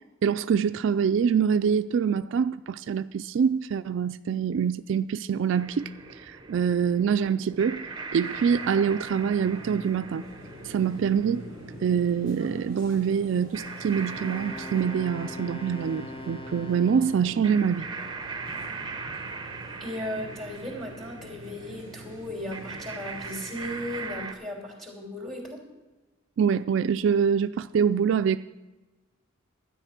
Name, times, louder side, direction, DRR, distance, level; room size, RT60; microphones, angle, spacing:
voice 1, 0.2-5.9 6.3-7.9 8.1-10.3 10.6-11.4 11.8-17.9 26.4-28.4, right 7 dB, 65° right, 0.3 m, -25 dB
sound 1, 5.6-24.3, right 4 dB, 20° right, 0.8 m, -41 dB
sound 2, 8.2-24.1, right 1 dB, 80° left, 4.6 m, -46 dB
Wind instrument woodwind instrument, 14.0-17.7, left 2 dB, 25° left, 0.6 m, -41 dB
voice 2, 19.8-25.6, left 1 dB, ahead, 3.2 m, -36 dB
12.5 x 9.9 x 5.9 m
head